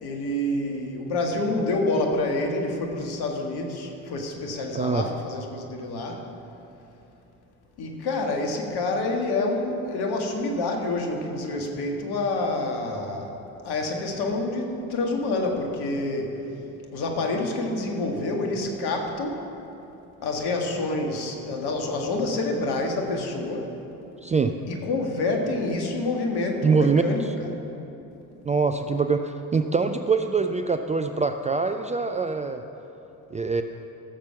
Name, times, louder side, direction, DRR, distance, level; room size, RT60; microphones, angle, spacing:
voice 1, 0.0-6.2 7.8-13.3 13.6-16.4 16.9-19.4 20.2-23.7 24.7-27.5, left 2 dB, 55° left, 2 dB, 1.9 m, -27 dB
voice 2, 4.7-5.1 24.2-24.6 26.6-27.0 28.5-32.6 33.3-33.6, right 4 dB, 15° right, 6 dB, 0.5 m, -24 dB
16.0 x 7.3 x 6.0 m, 2.9 s
figure-of-eight pair, 50°, 45 cm